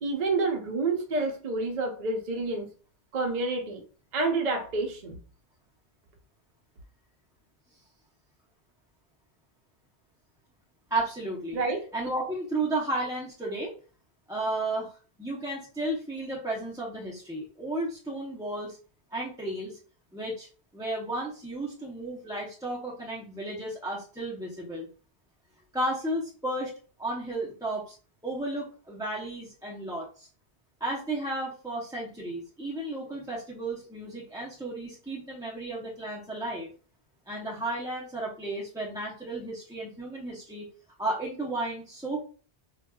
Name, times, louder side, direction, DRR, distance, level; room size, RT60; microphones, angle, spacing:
voice 1, 0.0-2.7 3.1-3.8 4.1-5.2 11.5-11.8, right 3 dB, 50° right, 0.7 m, -28 dB
voice 2, 10.9-11.6 11.9-13.7 14.3-18.8 19.1-19.8 20.1-20.5 20.7-24.9 25.7-26.7 27.0-28.0 28.2-30.3 30.8-36.7 37.3-40.7 41.0-42.2, right 2 dB, 5° right, 0.5 m, -33 dB
4.5 x 2.3 x 2.2 m
omnidirectional pair, 1.1 m